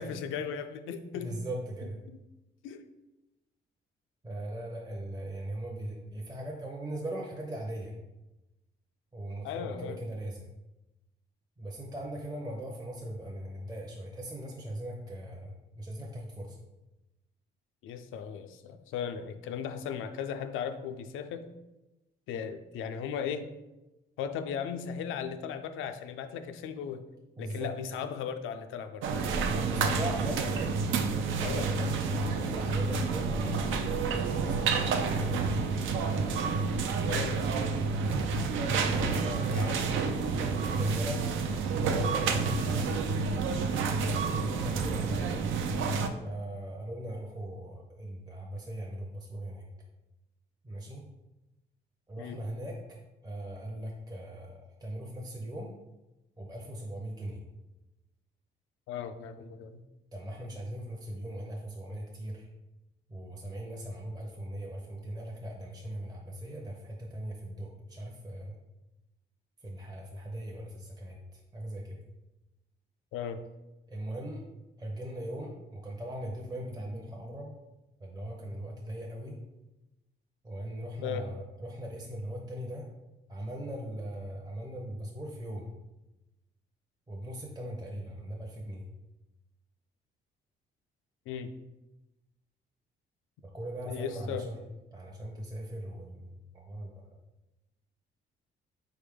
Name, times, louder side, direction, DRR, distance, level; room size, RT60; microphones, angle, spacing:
voice 1, 0.0-1.3 2.1-2.2 2.6-2.9 9.4-10.0 17.8-21.5 22.3-23.5 24.2-27.0 27.4-29.1 31.4-31.7 37.1-37.8 39.5-39.9 52.2-52.4 58.9-59.8 73.1-73.4 81.0-81.3 91.3-91.5 93.8-94.5, left 7 dB, 85° left, 9 dB, 0.4 m, -37 dB
voice 2, 1.1-2.0 4.2-7.9 9.1-10.5 11.6-16.6 27.4-27.7 29.4-30.6 30.9-36.1 38.9-39.8 40.4-41.2 41.8-42.9 44.0-45.4 46.2-49.7 50.6-51.0 52.1-52.8 53.2-55.7 56.4-57.4 60.1-62.4 63.1-68.6 69.6-72.0 73.9-74.5 74.8-77.5 78.0-79.4 80.4-82.8 83.3-85.7 87.1-88.8 93.4-94.6 94.9-96.9, right 1 dB, 20° right, -1 dB, 0.6 m, -39 dB
sound 1, 29.0-46.1, right 4 dB, 75° right, 0.5 m, -29 dB
4.0 x 3.5 x 3.5 m, 0.99 s
cardioid pair, 90°, 20 cm